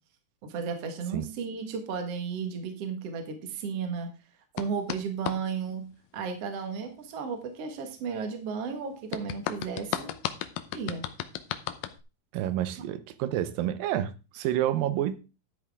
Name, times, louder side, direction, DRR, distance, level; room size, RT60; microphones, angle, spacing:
voice 1, 0.4-4.1 4.5-10.2 10.7-11.0, right 6 dB, 50° right, 2.4 m, -34 dB
sound 1, 4.6-5.4 9.1-12.0, left 12 dB, 85° left, 2.4 m, -34 dB
voice 2, 12.3-15.2, right 12 dB, 90° right, 2.5 m, -29 dB
12.0 x 8.4 x 3.6 m
omnidirectional pair, 3.9 m